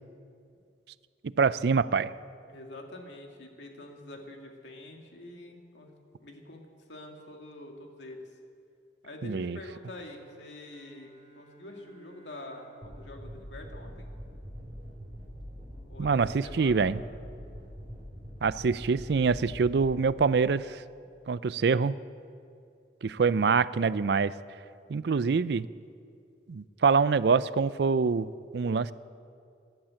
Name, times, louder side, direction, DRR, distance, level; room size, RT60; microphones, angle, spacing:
voice 1, 1.4-2.1 9.2-9.6 16.0-17.0 18.4-20.8 21.3-22.0 23.0-24.3 24.9-25.7 26.5-28.9, right 5 dB, 65° right, 17 dB, 0.4 m, -25 dB
voice 2, 2.5-5.9 6.2-8.4 9.0-14.1 15.9-16.9, left 1 dB, 85° left, 2 dB, 2.1 m, -46 dB
Bowed string instrument, 9.8-14.6, right 2 dB, 40° left, 2.8 m, -59 dB
sound 1, 12.8-20.2, equal, 30° right, 4.6 m, -44 dB
13.5 x 11.5 x 8.7 m, 2.3 s
head